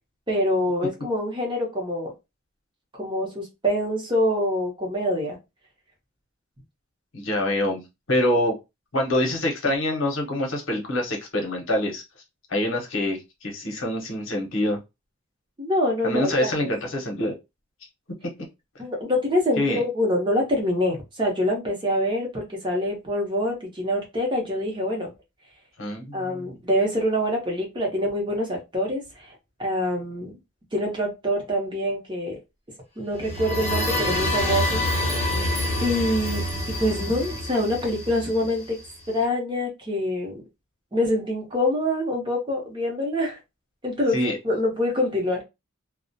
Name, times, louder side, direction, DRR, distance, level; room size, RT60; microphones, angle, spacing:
voice 1, 0.3-2.1 2.9-5.4 15.6-16.7 18.8-25.1 26.1-30.3 30.7-32.3 33.0-35.3 35.8-36.5 36.8-38.8 39.1-40.4 40.9-43.4 43.8-45.4, left 1 dB, 20° right, 0.7 m, -25 dB
voice 2, 7.1-7.8 8.1-8.6 8.9-12.0 12.5-14.8 16.0-17.3 19.6-19.8 25.8-26.6 44.1-44.4, left 1 dB, 60° left, 0.8 m, -25 dB
sound 1, 33.1-38.9, left 1 dB, 25° left, 0.8 m, -27 dB
2.3 x 2.0 x 2.6 m
head